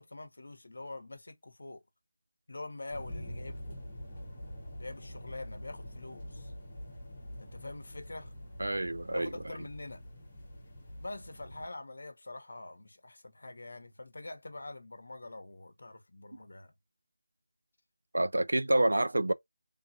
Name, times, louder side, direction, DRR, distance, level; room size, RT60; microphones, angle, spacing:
voice 1, 0.0-1.8 2.5-3.8 4.8-6.5 7.4-8.3 9.1-10.0 11.0-16.7, left 2 dB, 50° left, 0.8 m, -45 dB
sound 1, 2.9-11.7, equal, 10° left, 1.1 m, -45 dB
voice 2, 8.6-9.3 18.1-19.3, right 1 dB, 80° right, 0.4 m, -27 dB
3.5 x 2.9 x 2.6 m
figure-of-eight pair, 180°, 0 cm